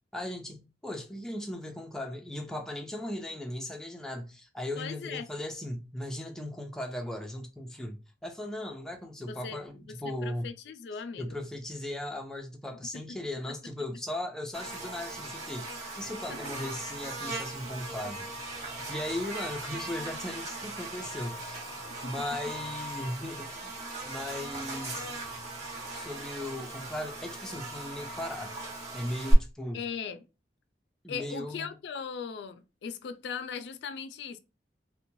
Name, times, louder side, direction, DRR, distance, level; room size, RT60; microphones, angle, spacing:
voice 1, 0.1-10.5 11.2-21.6 22.0-23.7 24.1-25.1 25.9-28.5 28.9-29.8 31.0-31.8, left 1 dB, 5° left, 0.4 m, -37 dB
voice 2, 4.8-5.3 9.3-11.4 12.9-13.0 16.3-16.4 22.0-22.1 29.7-30.2 31.1-34.4, left 6 dB, 80° left, 0.3 m, -39 dB
Buzz, 14.5-29.3, right 2 dB, 40° right, 1.2 m, -38 dB
2.9 x 2.1 x 2.6 m
head